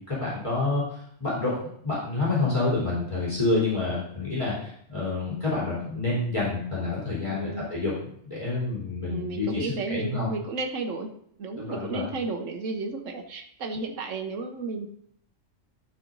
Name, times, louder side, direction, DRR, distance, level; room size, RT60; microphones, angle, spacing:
voice 1, 0.1-0.8 1.2-1.6 1.8-7.9 8.2-10.3 11.6-12.1, left 3 dB, 25° left, -8 dB, 3.6 m, -28 dB
voice 2, 7.3-7.7 9.1-11.1 11.4-14.9, right 3 dB, 85° right, 3 dB, 1.3 m, -33 dB
11.5 x 4.9 x 3.9 m, 0.66 s
omnidirectional pair, 1.3 m